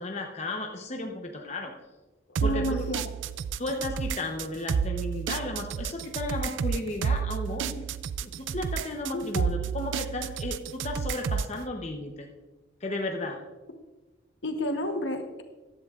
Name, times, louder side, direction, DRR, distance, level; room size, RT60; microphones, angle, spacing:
voice 1, 0.0-1.7 2.4-2.8 3.6-7.9 8.2-12.3 12.8-13.4, left 2 dB, 35° left, 2 dB, 0.8 m, -34 dB
voice 2, 2.3-3.1 9.1-9.5 14.4-15.4, left 1 dB, 65° left, 6 dB, 1.1 m, -31 dB
sound 1, 2.4-11.6, right 6 dB, 70° right, 0.3 m, -31 dB
15.0 x 10.5 x 2.5 m, 1.2 s
head